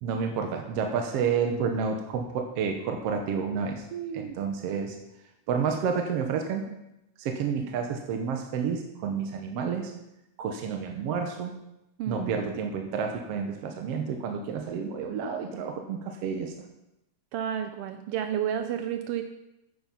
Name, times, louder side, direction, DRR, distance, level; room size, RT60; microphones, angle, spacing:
voice 1, 0.0-3.8 4.1-5.0 5.5-6.7 7.2-9.9 10.4-11.6 12.1-16.5, right 6 dB, 65° right, 5 dB, 1.7 m, -30 dB
voice 2, 3.9-4.4 12.0-12.5 17.3-19.2, right 9 dB, 90° right, 7 dB, 1.3 m, -31 dB
9.6 x 7.7 x 5.6 m, 0.88 s
omnidirectional pair, 3.3 m